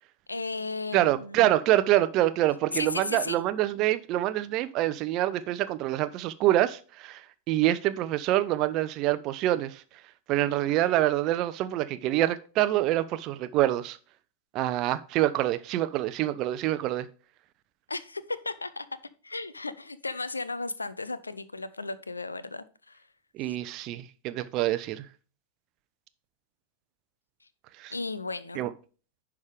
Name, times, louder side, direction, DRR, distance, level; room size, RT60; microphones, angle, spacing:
voice 1, 0.3-1.5 2.7-3.4 17.9-18.9 19.2-23.0 23.5-23.6 27.9-28.6, left 3 dB, 80° left, 0.5 m, -35 dB
voice 2, 0.9-9.8 10.3-14.0 14.5-17.1 23.3-25.1 27.8-27.9 28.6-28.7, right 14 dB, 40° right, 0.6 m, -26 dB
10.5 x 3.6 x 5.0 m
figure-of-eight pair, 90°, 0 cm